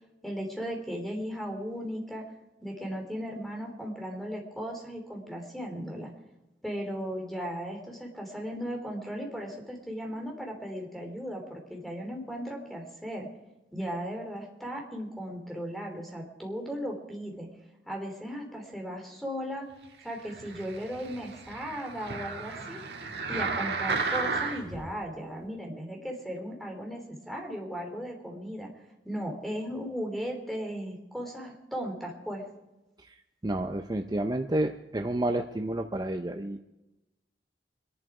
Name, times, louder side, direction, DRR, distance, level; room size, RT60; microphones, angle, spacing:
voice 1, 0.2-2.2 2.6-6.1 6.6-13.3 13.7-17.5 17.8-19.6 20.0-22.8 23.3-28.7 29.0-32.4, equal, ahead, 1 dB, 3.3 m, -36 dB
sound 1, 20.2-24.8 25.4-25.5, right 4 dB, 65° right, 1.9 m, -33 dB
voice 2, 33.4-36.6, right 1 dB, 25° right, 5 dB, 0.6 m, -30 dB
23.5 x 11.5 x 4.9 m, 0.99 s
head